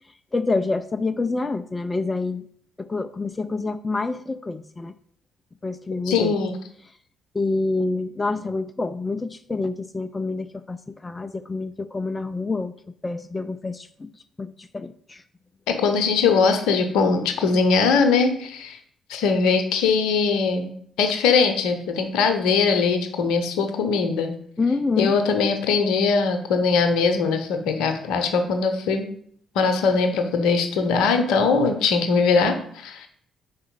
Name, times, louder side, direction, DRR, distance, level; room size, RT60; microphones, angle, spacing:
voice 1, 0.3-2.4 2.8-4.9 5.6-6.4 6.8-7.0 7.3-12.7 13.0-15.2 24.6-25.2, left 3 dB, 25° left, 9 dB, 0.3 m, -27 dB
voice 2, 6.1-6.5 15.7-18.8 19.1-20.7 21.0-24.3 25.0-29.1 29.5-33.1, left 5 dB, 65° left, 6 dB, 0.8 m, -21 dB
4.7 x 4.3 x 5.3 m, 0.63 s
figure-of-eight pair, 40°, 0 cm